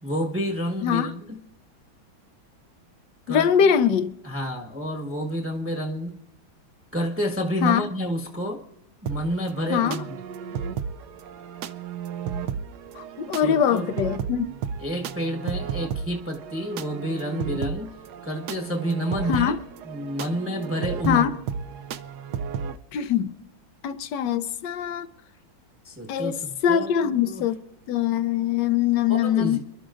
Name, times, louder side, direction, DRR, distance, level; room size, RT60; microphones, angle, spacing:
voice 1, 0.0-1.4 3.3-3.7 4.2-6.2 6.9-8.7 9.0-10.2 13.3-13.9 14.8-18.0 18.2-19.5 19.8-21.3 25.8-27.5 29.1-29.6, equal, 10° right, 1.0 m, -29 dB
voice 2, 3.3-4.1 7.6-7.8 9.7-10.0 13.0-14.6 19.3-19.6 21.1-21.3 22.9-23.3 23.8-25.1 26.1-26.4 26.6-27.6 27.9-29.6, left 9 dB, 70° left, 1.2 m, -22 dB
sound 1, 9.1-22.8, right 7 dB, 70° right, 1.0 m, -33 dB
27.5 x 12.0 x 2.5 m
omnidirectional pair, 2.2 m